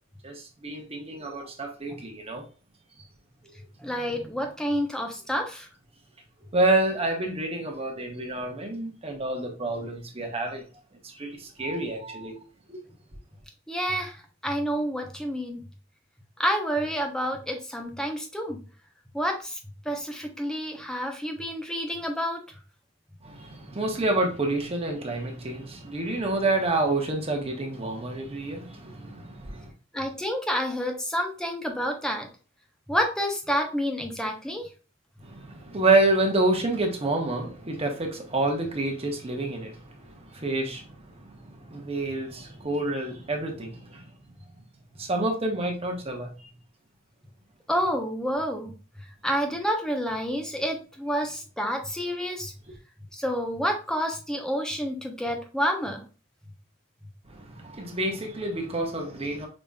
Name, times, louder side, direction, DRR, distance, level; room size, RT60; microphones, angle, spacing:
voice 1, 0.2-2.4 6.5-10.6 11.0-12.4 12.7-12.8 23.2-29.7 35.2-44.0 45.0-46.3 57.3-59.5, right 2 dB, 30° right, 1.0 m, -28 dB
voice 2, 3.8-5.7 13.7-15.6 16.4-18.6 19.1-19.6 19.8-22.4 29.9-32.3 32.9-34.7 47.7-48.7 49.2-52.5 53.1-56.0, equal, 5° left, 0.7 m, -29 dB
5.1 x 2.9 x 2.3 m
head